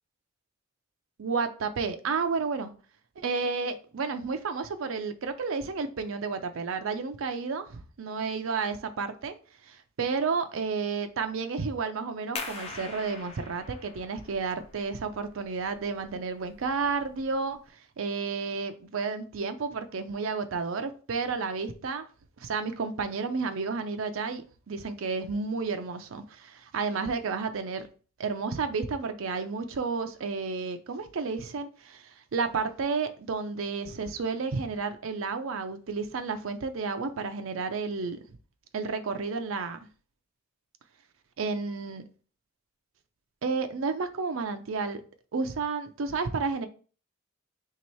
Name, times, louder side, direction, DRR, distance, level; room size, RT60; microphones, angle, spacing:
voice 1, 1.2-2.7 3.2-9.3 9.6-17.6 18.0-22.1 22.4-27.9 28.2-38.4 38.7-39.8 41.4-42.0 43.4-45.0 45.3-46.7, right 4 dB, 70° right, 8 dB, 0.5 m, -31 dB
sound 1, 12.4-17.7, left 3 dB, 25° left, 0.4 m, -43 dB
3.0 x 2.9 x 4.4 m, 0.39 s
head